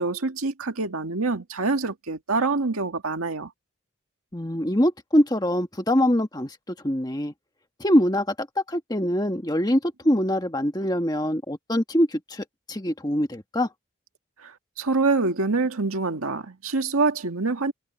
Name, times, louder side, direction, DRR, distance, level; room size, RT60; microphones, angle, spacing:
voice 1, 0.0-3.5 14.8-17.7, right 3 dB, 85° right, 1.9 m, -25 dB
voice 2, 4.3-7.3 7.8-13.7, equal, 20° left, 1.5 m, -24 dB
head